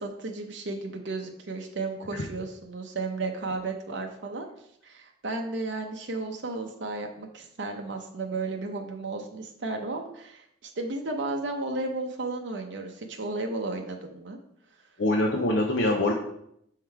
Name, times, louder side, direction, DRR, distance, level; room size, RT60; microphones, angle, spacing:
voice 1, 0.0-4.5 4.8-14.4, right 3 dB, 75° right, 3 dB, 0.7 m, -33 dB
voice 2, 15.0-16.1, left 1 dB, 80° left, -1 dB, 0.8 m, -24 dB
6.5 x 3.7 x 4.5 m, 0.73 s
head